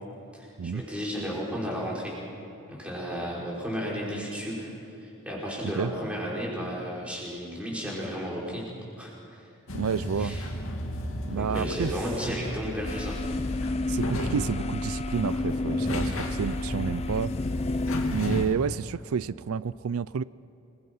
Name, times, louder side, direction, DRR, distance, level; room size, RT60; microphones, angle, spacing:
voice 1, 0.3-2.2 2.7-4.7 5.0-8.7 9.0-9.4 10.2-10.4 11.3-13.2 16.0-16.2, equal, 5° right, -5 dB, 5.7 m, -33 dB
sound 1, 9.7-18.5, left 1 dB, 80° left, 2.6 m, -35 dB
voice 2, 9.7-10.4 11.3-11.9 12.3-12.4 13.9-17.3 18.1-20.2, right 6 dB, 90° right, 18 dB, 0.4 m, -30 dB
sound 2, 12.8-18.5, left 2 dB, 30° left, 0.5 m, -30 dB
28.0 x 22.5 x 5.6 m, 2.9 s
head